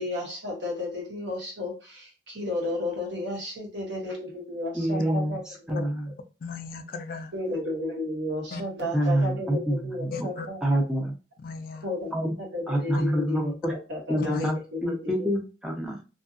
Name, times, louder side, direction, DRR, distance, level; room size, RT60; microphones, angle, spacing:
voice 1, 0.0-5.4 5.7-6.1 7.3-10.6 11.8-12.2 12.5-15.3, left 2 dB, 85° right, -1 dB, 1.2 m, -33 dB
voice 2, 4.7-6.1 8.9-10.3 10.6-11.1 12.1-12.4 12.7-13.7 14.1-16.0, equal, 5° right, -1 dB, 0.5 m, -27 dB
voice 3, 6.4-7.3 8.5-8.6 10.1-10.5 11.4-11.8 12.9-13.0 14.2-14.5, left 4 dB, 55° left, 7 dB, 0.3 m, -36 dB
2.6 x 2.5 x 2.4 m, 0.31 s
head